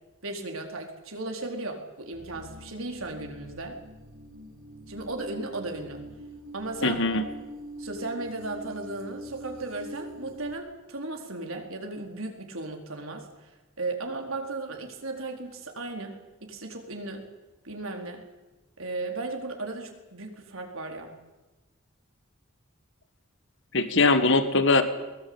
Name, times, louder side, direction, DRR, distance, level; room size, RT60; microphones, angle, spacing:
voice 1, 0.2-3.8 4.9-6.0 6.5-7.2 7.8-13.5 13.8-17.3 17.6-18.3 18.8-21.1, right 2 dB, 85° right, 3 dB, 4.3 m, -36 dB
sound 1, 2.1-10.6, equal, 70° right, 4.9 m, -44 dB
voice 2, 6.8-7.2 23.7-24.8, left 3 dB, 65° left, 9 dB, 1.8 m, -21 dB
21.5 x 20.0 x 8.8 m, 1.1 s
head